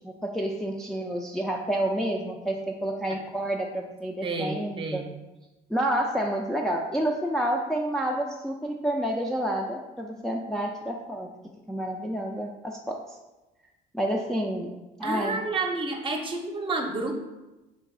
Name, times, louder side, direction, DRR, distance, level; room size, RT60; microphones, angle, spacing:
voice 1, 0.0-5.0 5.7-11.3 11.7-13.0 13.9-14.7 15.0-15.4, right 1 dB, 5° left, -1 dB, 0.3 m, -29 dB
voice 2, 4.2-5.1 15.0-17.1, right 3 dB, 30° right, 3 dB, 0.7 m, -30 dB
4.0 x 2.6 x 3.9 m, 1.1 s
cardioid pair, 110°, 17 cm